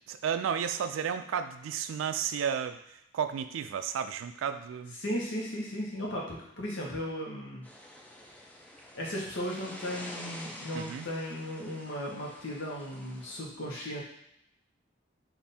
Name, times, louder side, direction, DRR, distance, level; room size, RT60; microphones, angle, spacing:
voice 1, 0.1-2.8 3.1-4.9 10.7-11.1, right 7 dB, 80° right, 9 dB, 0.3 m, -32 dB
voice 2, 5.0-7.7 8.9-14.0, equal, 70° left, -3 dB, 1.0 m, -36 dB
sound 1, 7.6-13.4, left 1 dB, 5° left, 0.4 m, -47 dB
3.4 x 2.6 x 4.1 m, 0.76 s
head